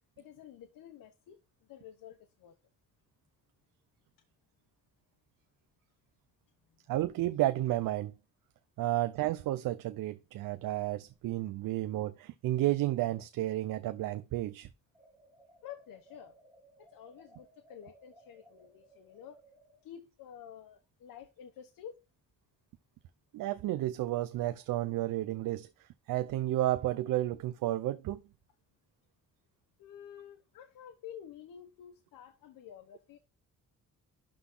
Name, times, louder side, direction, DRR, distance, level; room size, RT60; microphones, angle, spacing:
voice 1, 0.2-2.5 6.7-6.8 15.6-16.4 16.8-19.4 19.8-22.0 29.8-33.2, left 9 dB, 90° left, 1.1 m, -50 dB
voice 2, 6.9-8.1 8.8-14.7 23.3-28.2, right 15 dB, 85° right, 0.6 m, -32 dB
sound 1, 14.9-19.8, right 1 dB, 5° right, 3.3 m, -61 dB
11.5 x 3.9 x 3.8 m
cardioid pair, 165°, 33 cm